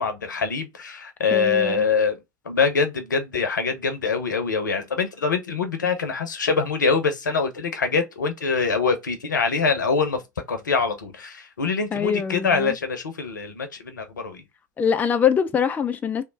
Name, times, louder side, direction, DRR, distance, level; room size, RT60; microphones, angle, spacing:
voice 1, 0.0-2.1 2.5-10.2 10.5-14.4, left 5 dB, 75° left, 0.7 m, -24 dB
voice 2, 1.3-1.9 11.9-12.8 14.8-16.2, left 7 dB, 15° left, 0.3 m, -23 dB
3.1 x 2.1 x 3.7 m
figure-of-eight pair, 75°, 10 cm